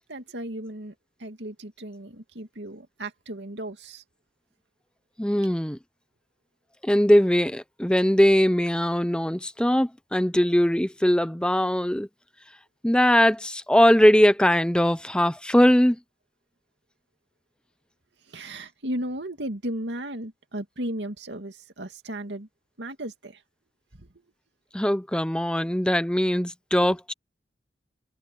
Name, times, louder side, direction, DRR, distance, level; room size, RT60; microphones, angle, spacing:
voice 1, 0.1-4.0 18.3-22.5 22.8-23.4 23.9-24.1 26.8-27.0, right 1 dB, 85° right, 2.4 m, -35 dB
voice 2, 5.2-5.8 6.8-12.1 12.8-16.0 24.7-27.1, equal, 5° left, 0.6 m, -21 dB
head